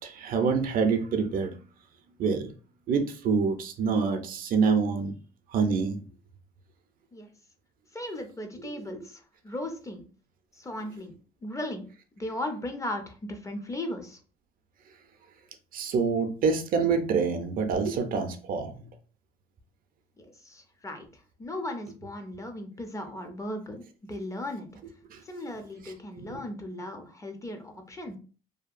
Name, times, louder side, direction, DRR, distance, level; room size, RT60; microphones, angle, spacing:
voice 1, 0.0-1.6 2.2-2.5 2.9-5.1 5.5-6.0 15.7-18.9 25.1-25.2 26.3-26.4, right 5 dB, 55° right, 0.5 m, -26 dB
voice 2, 7.9-10.0 10.6-11.8 12.2-14.2 20.2-23.8 24.1-24.7 25.2-28.2, left 1 dB, 20° left, 0.5 m, -37 dB
2.7 x 2.2 x 2.4 m
cardioid pair, 110°, 17 cm